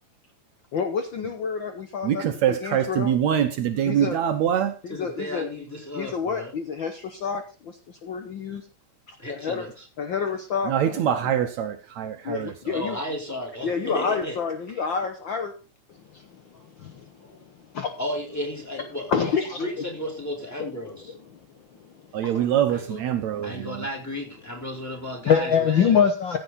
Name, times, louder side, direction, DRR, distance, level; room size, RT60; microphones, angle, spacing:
voice 1, 0.7-3.1 3.9-4.2 4.8-5.5 5.9-8.6 9.1-9.7 10.0-11.3 12.2-13.0 13.6-15.5 16.1-16.4 16.8-17.0 17.7-17.9 19.1-19.6 20.6-20.7 22.2-22.4 25.3-26.4, left 6 dB, 80° left, 1.0 m, -27 dB
voice 2, 2.0-4.7 10.7-12.5 22.1-23.8, right 10 dB, 70° right, 2.1 m, -24 dB
voice 3, 4.9-6.5 9.2-9.9 12.7-14.4 14.7-14.8 16.5-16.9 17.2-17.4 18.0-19.1 19.6-21.1 22.7-23.0 23.4-26.0, left 1 dB, 5° left, 3.9 m, -34 dB
15.5 x 7.7 x 4.1 m
omnidirectional pair, 3.6 m